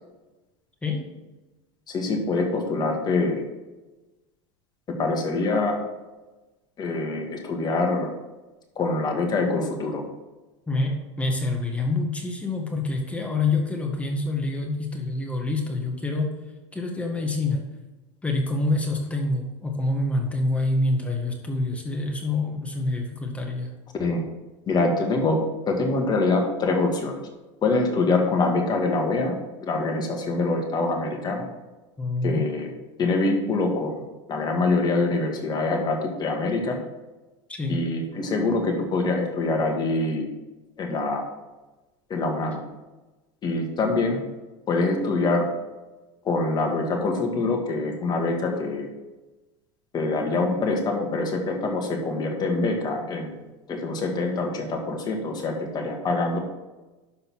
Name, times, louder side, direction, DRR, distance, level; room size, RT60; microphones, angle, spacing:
voice 1, 1.9-3.4 5.0-5.8 6.8-8.1 8.8-10.0 24.0-24.2 24.7-25.4 25.7-27.1 27.6-31.5 32.2-32.7 33.0-34.0 34.3-36.8 37.7-40.3 40.8-41.3 42.1-42.6 43.4-44.2 44.7-45.5 46.2-48.9 49.9-53.4 53.7-56.4, left 3 dB, 25° left, 2 dB, 1.9 m, -25 dB
voice 2, 10.7-16.3 16.7-17.6 18.2-23.7 32.0-32.4 37.5-37.8, left 2 dB, 10° left, 1 dB, 1.7 m, -26 dB
11.5 x 4.1 x 6.2 m, 1.1 s
supercardioid pair, 130°, 15 cm